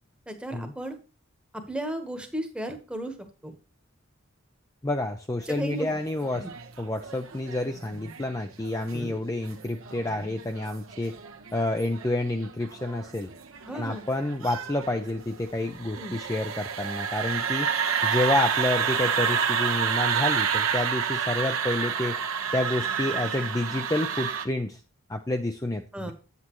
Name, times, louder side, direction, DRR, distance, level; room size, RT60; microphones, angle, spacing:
voice 1, 0.3-1.0 1.5-3.1 3.4-3.5 5.5-5.9 8.9-9.1 13.7-14.0 16.0-16.2 25.9-26.1, right 1 dB, 5° right, 6 dB, 1.2 m, -34 dB
voice 2, 4.8-6.5 6.8-11.2 11.5-13.3 13.7-17.7 18.0-22.2 22.5-24.8 25.1-26.1, left 1 dB, 15° left, 5 dB, 0.5 m, -29 dB
sound 1, 5.6-24.5, right 7 dB, 75° right, 1.2 m, -30 dB
8.7 x 8.2 x 3.1 m, 0.33 s
head